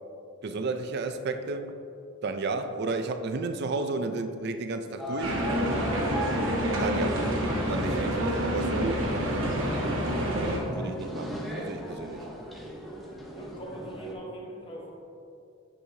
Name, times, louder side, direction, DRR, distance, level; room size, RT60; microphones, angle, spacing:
voice 1, 0.4-1.8 2.2-5.4 6.7-7.3 7.7-9.1 10.3-12.3, right 3 dB, 55° right, 8 dB, 0.4 m, -32 dB
sound 1, 5.0-14.1, equal, ahead, 0.7 m, -38 dB
sound 2, 5.2-10.6, equal, 75° right, 1.0 m, -28 dB
voice 2, 13.3-14.9, right 1 dB, 25° left, -3 dB, 1.2 m, -41 dB
8.3 x 6.1 x 2.8 m, 2.6 s
head